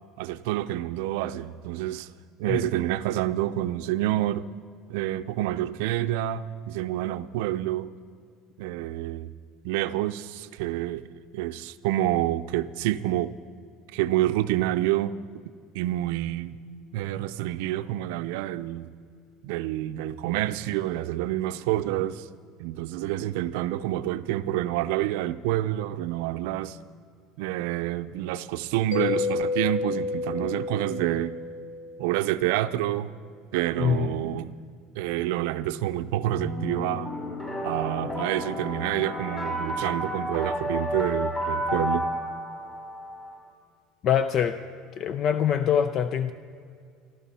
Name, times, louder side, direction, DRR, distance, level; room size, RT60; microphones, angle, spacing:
voice 1, 0.2-2.1 2.4-4.5 4.9-7.9 8.6-9.3 9.6-11.1 11.3-13.3 13.9-15.2 15.5-16.6 16.9-18.9 19.4-22.3 22.6-26.8 27.4-31.4 32.0-33.1 33.5-34.6 34.9-37.1 37.6-42.1, right 14 dB, 80° right, 0.6 m, -28 dB
Mallet percussion, 28.9-32.4, left 4 dB, 65° left, 1.6 m, -30 dB
voice 2, 33.8-34.1 44.0-44.6 45.0-46.3, left 8 dB, 50° left, 0.5 m, -24 dB
sound 1, 36.4-43.4, left 1 dB, 30° left, 5.1 m, -31 dB
21.0 x 14.0 x 4.2 m
supercardioid pair, 105°, 0 cm